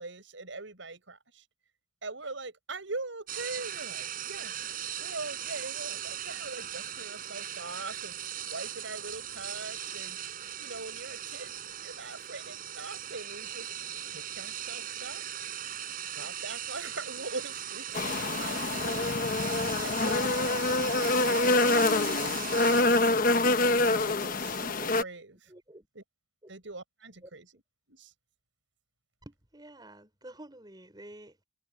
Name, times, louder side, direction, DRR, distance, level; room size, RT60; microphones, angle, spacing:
voice 1, 0.0-1.4 2.0-4.6 5.0-8.2 8.5-10.2 10.6-13.7 14.1-15.2 16.1-22.1 22.8-23.2 23.6-25.5 25.9-26.0 26.5-27.6 27.9-28.1, right 3 dB, 90° right, 6.4 m, -42 dB
sound 1, 3.3-22.8, right 10 dB, 45° right, 7.9 m, -39 dB
sound 2, 17.9-25.0, left 2 dB, 45° left, 0.9 m, -26 dB
voice 2, 25.5-25.9 27.2-27.3 29.3-31.4, right 1 dB, 20° right, 5.5 m, -49 dB
open air
head